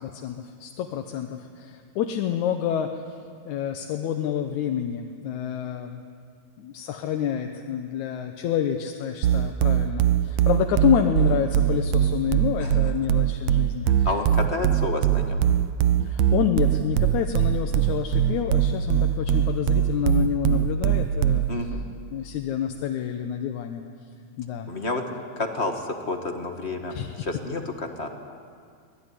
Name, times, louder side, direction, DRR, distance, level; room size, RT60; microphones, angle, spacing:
voice 1, 0.0-2.9 3.5-6.0 6.6-14.1 16.0-21.5 22.1-23.8 24.4-24.7 26.9-27.1, left 9 dB, 85° left, 5 dB, 2.4 m, -28 dB
sound 1, 9.2-21.6, right 10 dB, 70° right, 1.9 m, -21 dB
voice 2, 14.0-15.4 21.5-21.8 24.7-25.0 25.4-28.1, left 2 dB, 25° left, 4 dB, 1.7 m, -30 dB
24.5 x 19.0 x 9.8 m, 2.2 s
omnidirectional pair, 3.3 m